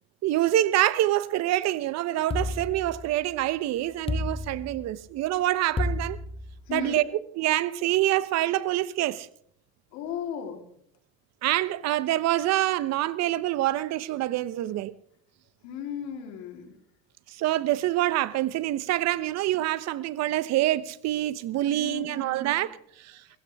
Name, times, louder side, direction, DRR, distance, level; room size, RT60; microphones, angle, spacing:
voice 1, 0.2-6.2 6.7-7.0 7.4-9.3 11.4-14.9 17.3-23.2, right 14 dB, 60° right, 1.0 m, -26 dB
sound 1, 2.3-3.4 4.1-5.1 5.8-6.9, left 2 dB, 20° left, 1.1 m, -31 dB
voice 2, 6.7-7.0 9.9-10.6 15.6-16.8 21.7-22.7, left 7 dB, 75° left, 3.8 m, -36 dB
23.0 x 15.0 x 3.6 m
supercardioid pair, 85°, 29 cm